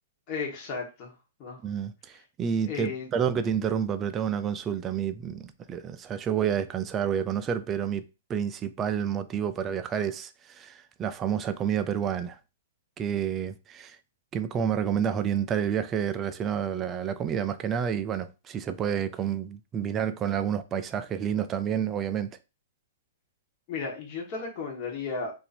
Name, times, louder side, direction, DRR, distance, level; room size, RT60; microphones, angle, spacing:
voice 1, 0.3-1.1 1.4-1.6 2.7-3.1 23.7-25.3, left 4 dB, 35° left, 1.3 m, -34 dB
voice 2, 1.6-8.0 8.3-12.4 13.0-14.0 14.3-22.3, right 8 dB, 25° right, 0.4 m, -29 dB
2.7 x 2.6 x 4.2 m
hypercardioid pair, 125°, 0 cm